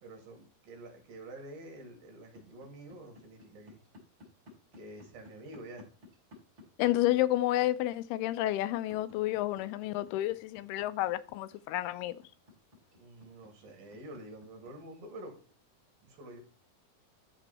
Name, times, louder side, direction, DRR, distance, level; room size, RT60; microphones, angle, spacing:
voice 1, 0.0-3.8 4.7-5.9 12.9-15.3 16.0-16.4, right 1 dB, 65° right, 4.2 m, -48 dB
sound 1, 2.3-14.7, left 3 dB, 30° right, 3.9 m, -55 dB
voice 2, 6.8-12.2, left 15 dB, 85° left, 2.5 m, -30 dB
13.0 x 4.5 x 4.1 m
omnidirectional pair, 4.6 m